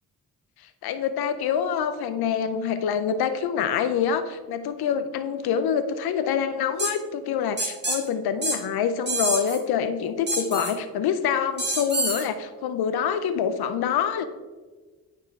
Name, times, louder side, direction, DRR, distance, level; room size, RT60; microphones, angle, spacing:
voice 1, 0.6-14.3, left 7 dB, 75° left, 11 dB, 0.5 m, -26 dB
sound 1, 6.8-6.9 7.6-8.0 8.4-8.6 9.1-9.6 10.3-10.7 11.6-12.2, right 2 dB, 25° right, 1.5 m, -26 dB
9.4 x 4.2 x 3.5 m, 1.3 s
cardioid pair, 55°, 38 cm